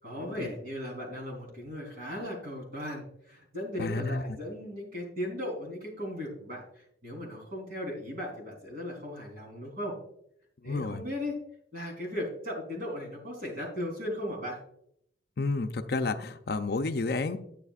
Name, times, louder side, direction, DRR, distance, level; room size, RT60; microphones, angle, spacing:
voice 1, 0.0-10.0 10.6-11.4 11.7-14.6, left 1 dB, 50° right, 0 dB, 3.6 m, -37 dB
voice 2, 3.8-4.4 10.6-11.0 15.4-17.4, left 3 dB, 55° left, 8 dB, 0.5 m, -31 dB
11.0 x 8.6 x 2.4 m, 0.70 s
head